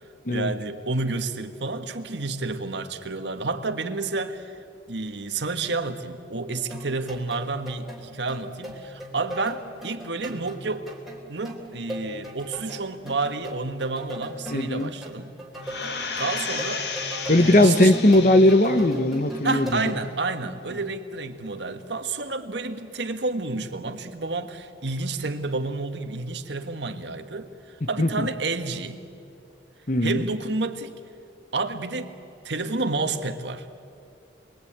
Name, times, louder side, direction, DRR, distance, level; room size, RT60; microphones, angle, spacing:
voice 1, 0.3-4.5 4.9-10.9 11.3-15.3 16.2-17.9 19.4-29.0 30.0-30.9 31.5-32.1 32.4-33.7, right 3 dB, 75° right, 7 dB, 1.6 m, -30 dB
sound 1, 6.7-20.0, equal, ahead, 3.4 m, -39 dB
voice 2, 14.5-14.9 17.3-19.8 27.8-28.3 29.9-30.2, left 1 dB, 45° left, 10 dB, 1.1 m, -19 dB
sound 2, 15.6-19.0 19.5-19.6, left 5 dB, 70° left, 1.8 m, -33 dB
28.5 x 22.0 x 8.8 m, 2.5 s
head